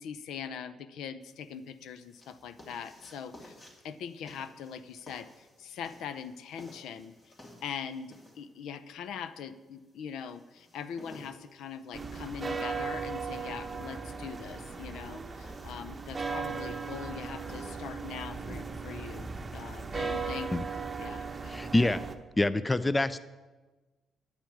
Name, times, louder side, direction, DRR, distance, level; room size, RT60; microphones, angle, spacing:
voice 1, 0.0-3.6 3.8-7.2 7.6-20.5 21.0-21.6, left 7 dB, 80° left, 12 dB, 0.6 m, -42 dB
sound 1, 1.2-19.8, left 1 dB, 30° left, 2.7 m, -56 dB
sound 2, 11.9-22.1, right 4 dB, 25° right, 0.9 m, -37 dB
voice 2, 21.5-22.0 22.4-23.2, left 2 dB, 15° left, 15 dB, 0.5 m, -26 dB
9.8 x 5.9 x 8.6 m, 1.2 s
cardioid pair, 90°, 0 cm